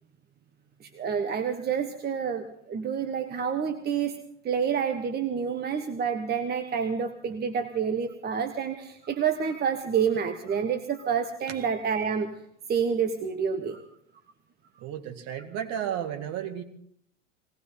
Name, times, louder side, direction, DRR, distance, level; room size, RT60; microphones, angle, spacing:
voice 1, 0.8-4.1 4.4-12.3 12.7-13.8, right 7 dB, 25° right, 7 dB, 1.3 m, -28 dB
voice 2, 14.8-16.6, right 9 dB, 45° right, 6 dB, 2.2 m, -33 dB
20.5 x 18.5 x 3.9 m, 0.69 s
figure-of-eight pair, 85°, 37 cm